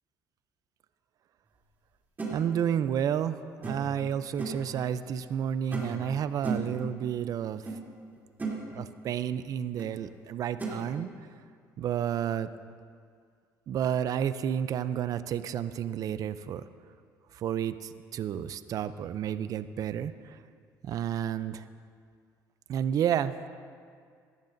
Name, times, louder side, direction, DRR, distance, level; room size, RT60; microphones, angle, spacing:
sound 1, 2.2-2.4 3.6-4.0 4.4-4.7 5.7-6.0 6.4-6.8 7.7-7.8 8.1-8.6 9.8-9.9 10.6-10.8, right 4 dB, 25° right, 3.1 m, -34 dB
voice 1, 2.3-7.6 8.7-11.1 11.8-12.5 13.7-16.6 17.4-20.1 20.8-21.6 22.7-23.3, right 9 dB, 55° right, 13 dB, 0.5 m, -31 dB
17.5 x 12.0 x 2.6 m, 2.1 s
cardioid pair, 100°, 7 cm